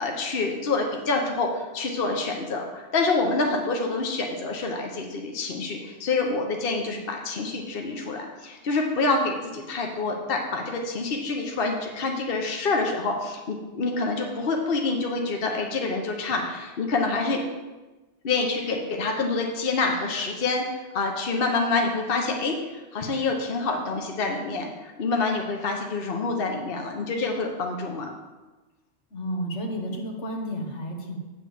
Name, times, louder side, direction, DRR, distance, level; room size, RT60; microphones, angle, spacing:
voice 1, 0.0-17.4 18.2-20.6 20.9-22.5 22.9-28.1, left 3 dB, 55° left, 2 dB, 1.1 m, -27 dB
voice 2, 29.1-31.2, equal, 80° left, 1 dB, 1.6 m, -31 dB
8.7 x 4.2 x 7.0 m, 1.2 s
omnidirectional pair, 1.2 m